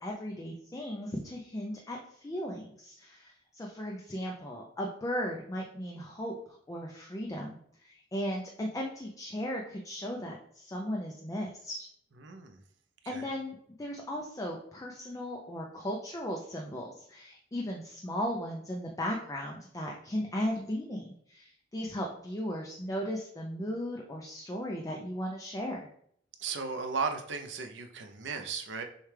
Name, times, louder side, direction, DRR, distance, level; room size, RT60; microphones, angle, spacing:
voice 1, 0.0-6.3 6.7-11.9 13.1-25.9, equal, 20° left, -1 dB, 0.4 m, -36 dB
voice 2, 12.2-12.6 13.0-13.3 26.4-28.8, right 5 dB, 70° right, 5 dB, 0.6 m, -35 dB
6.3 x 2.3 x 3.2 m, 0.66 s
head